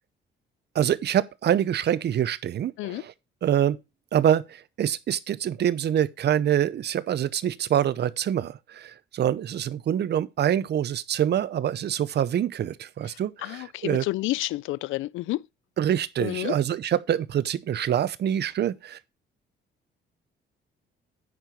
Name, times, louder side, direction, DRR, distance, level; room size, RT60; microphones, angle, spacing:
voice 1, 0.7-3.1 3.4-3.8 4.1-14.1 15.8-19.0, right 10 dB, 55° right, 0.7 m, -25 dB
voice 2, 13.4-15.4 16.2-16.5, left 18 dB, 85° left, 0.4 m, -30 dB
9.6 x 4.6 x 5.1 m
cardioid pair, 90°, 20 cm